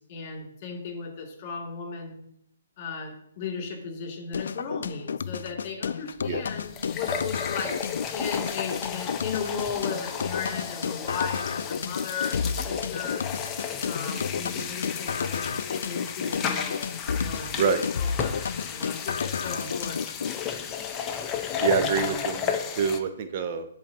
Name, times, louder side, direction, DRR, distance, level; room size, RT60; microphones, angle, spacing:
voice 1, 0.1-2.2 2.8-7.7 8.1-13.2 13.8-20.0 21.6-22.2, left 5 dB, 35° left, -1 dB, 2.6 m, -36 dB
sound 1, 4.3-20.3, left 6 dB, 70° left, 0.3 m, -32 dB
sound 2, 6.3-6.4 6.6-23.0, left 7 dB, 20° left, 0.6 m, -33 dB
voice 2, 21.6-23.7, right 6 dB, 40° right, 8 dB, 0.6 m, -26 dB
10.0 x 4.2 x 2.9 m, 0.69 s
hypercardioid pair, 145°, 0 cm